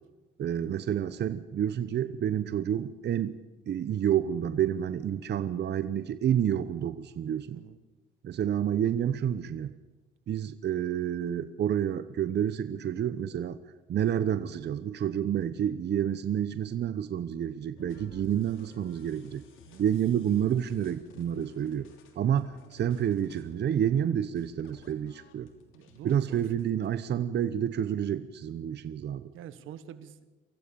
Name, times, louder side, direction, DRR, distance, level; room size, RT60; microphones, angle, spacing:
voice 1, 0.4-7.6 8.2-9.7 10.3-13.6 13.9-19.4 19.8-21.9 22.2-25.5 26.0-29.3, right 9 dB, 60° right, 13 dB, 0.9 m, -29 dB
voice 2, 7.5-7.8 19.7-19.8 22.3-22.4 25.7-26.5 29.3-30.3, right 10 dB, 85° right, 13 dB, 1.5 m, -47 dB
sound 1, 17.8-26.9, left 4 dB, 90° left, 3.2 m, -56 dB
24.5 x 15.5 x 7.0 m, 1.3 s
cardioid pair, 90°, 20 cm